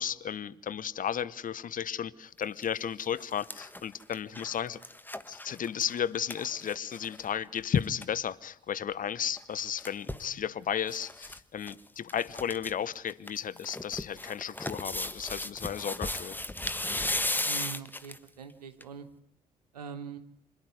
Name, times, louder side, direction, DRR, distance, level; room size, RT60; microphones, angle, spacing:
voice 1, 0.0-4.8 5.3-16.4, left 8 dB, 45° left, 1.0 m, -34 dB
sound 1, 2.4-2.6 3.0-7.3 7.6-7.7 7.8-8.1 9.4-10.3 10.9-11.4 11.6-11.7 12.1-12.7 13.1-18.3 18.8-18.9, left 1 dB, 10° left, 1.3 m, -36 dB
voice 2, 10.2-10.5 17.5-19.1 19.7-20.2, right 6 dB, 85° right, 1.2 m, -43 dB
26.0 x 11.5 x 9.6 m
figure-of-eight pair, 45°, 20 cm